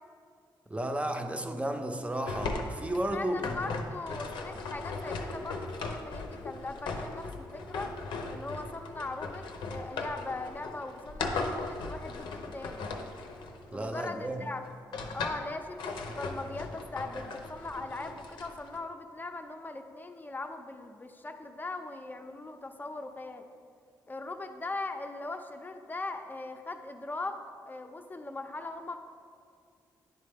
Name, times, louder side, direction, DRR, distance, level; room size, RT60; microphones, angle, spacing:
voice 1, 0.7-3.6 13.7-14.5, right 1 dB, 15° right, 5 dB, 0.7 m, -33 dB
sound 1, 2.3-14.1 14.7-15.5 15.8-18.8, left 3 dB, 85° left, 0.7 m, -38 dB
voice 2, 3.1-7.9 8.3-12.9 13.7-14.6 15.1-23.5 24.1-29.0, left 2 dB, 25° left, 6 dB, 0.6 m, -40 dB
10.5 x 4.0 x 3.5 m, 2.3 s
cardioid pair, 75°, 8 cm